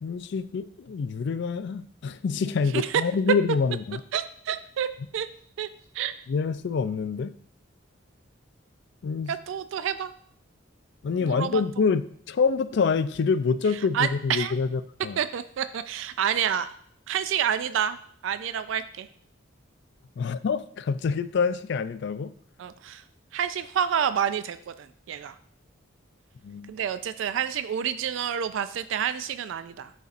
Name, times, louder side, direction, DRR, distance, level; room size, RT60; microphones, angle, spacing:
voice 1, 0.0-4.0 6.3-7.3 9.0-9.3 11.0-12.0 12.3-15.2 20.2-22.3 26.4-26.7, left 5 dB, 60° left, 13 dB, 0.4 m, -26 dB
voice 2, 4.1-4.9 5.1-5.3 5.6-5.7 5.9-6.2 9.3-10.1 11.1-11.6 13.9-14.5 15.2-16.7 17.1-18.0 18.2-19.1 22.6-23.0 23.3-25.4 26.7-29.9, right 8 dB, 70° right, 13 dB, 0.3 m, -28 dB
12.0 x 4.1 x 2.5 m, 0.63 s
head